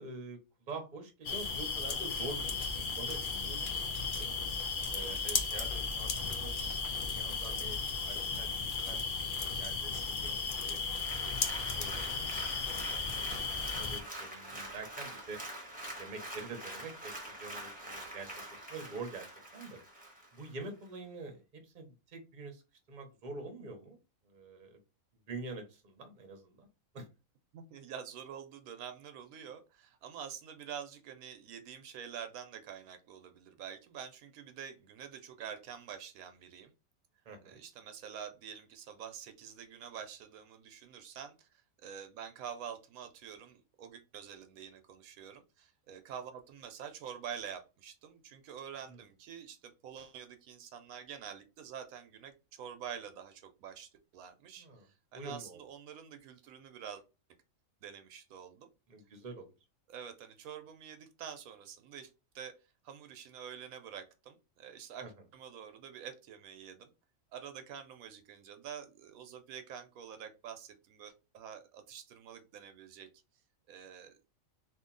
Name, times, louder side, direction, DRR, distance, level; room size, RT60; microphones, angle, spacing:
voice 1, 0.0-4.3 4.9-6.6 7.1-8.5 8.8-12.5 12.9-15.4 16.0-19.3 19.5-19.8 20.3-22.6 22.9-24.0 24.2-24.8 25.3-26.7 26.9-27.1 37.2-37.6 48.9-49.0 54.6-54.9 55.1-55.6 58.9-59.5 65.0-65.1, right 3 dB, 40° right, 5 dB, 0.8 m, -46 dB
sound 1, 1.2-14.0, left 5 dB, 55° left, 0.6 m, -35 dB
Applause, 10.8-20.5 21.0-21.1, right 1 dB, 5° right, 0.9 m, -45 dB
voice 2, 27.5-36.7 37.5-57.0 57.8-58.7 59.9-62.1 62.3-62.5 62.8-66.9 67.3-73.1 73.7-74.2, right 8 dB, 80° right, 8 dB, 1.0 m, -47 dB
2.8 x 2.5 x 3.7 m, 0.29 s
omnidirectional pair, 1.5 m